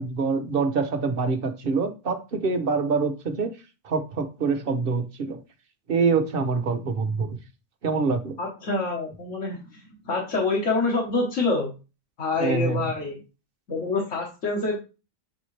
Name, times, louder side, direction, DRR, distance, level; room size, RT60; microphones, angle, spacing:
voice 1, 0.0-3.5 3.8-5.4 5.9-7.4 7.8-8.4 12.4-12.8, right 4 dB, 55° right, 1.0 m, -25 dB
voice 2, 8.4-11.7 12.2-13.2 13.7-14.8, left 3 dB, 85° left, 1.6 m, -26 dB
8.4 x 3.6 x 3.3 m
omnidirectional pair, 1.2 m